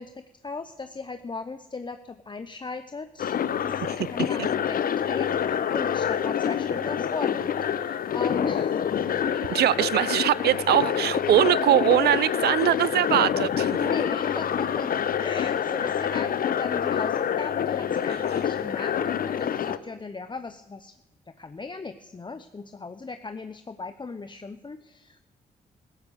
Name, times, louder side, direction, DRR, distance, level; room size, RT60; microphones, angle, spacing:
voice 1, 0.0-8.8 13.8-20.9 21.4-25.2, left 4 dB, 25° left, 0.7 m, -37 dB
sound 1, 3.2-19.8, left 8 dB, 60° left, 0.7 m, -27 dB
voice 2, 9.5-13.8, right 13 dB, 70° right, 0.5 m, -22 dB
13.5 x 10.5 x 6.8 m
supercardioid pair, 55°, 17 cm